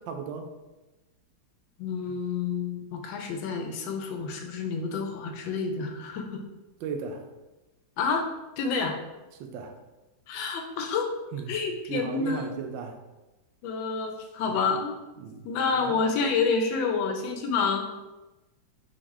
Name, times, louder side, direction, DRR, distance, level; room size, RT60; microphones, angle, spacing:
voice 1, 0.1-0.5 6.8-7.3 9.4-9.8 11.3-11.5 11.9-13.0 14.5-14.6 15.2-15.5 15.8-16.0, right 5 dB, 80° right, 5 dB, 1.3 m, -36 dB
voice 2, 1.8-6.4 8.0-8.3 8.6-8.9 10.3-11.1 11.5-12.6 13.6-15.0 15.4-17.8, left 5 dB, 85° left, 4 dB, 1.4 m, -28 dB
4.6 x 3.6 x 3.1 m, 1.1 s
omnidirectional pair, 2.0 m